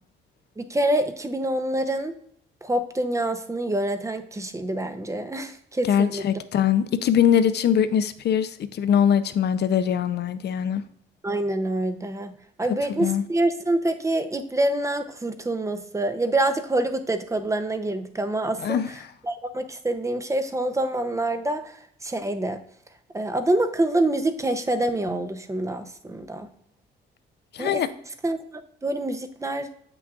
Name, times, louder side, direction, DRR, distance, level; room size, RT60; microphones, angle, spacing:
voice 1, 0.6-2.1 2.6-6.3 11.2-18.8 19.2-22.6 23.1-26.5 27.6-27.8 28.2-29.7, right 1 dB, 15° right, 8 dB, 0.6 m, -26 dB
voice 2, 5.9-10.8 13.0-13.2 18.6-18.9 27.5-27.9, left 8 dB, 60° left, 12 dB, 0.5 m, -22 dB
7.9 x 6.0 x 2.4 m, 0.68 s
cardioid pair, 90°, 20 cm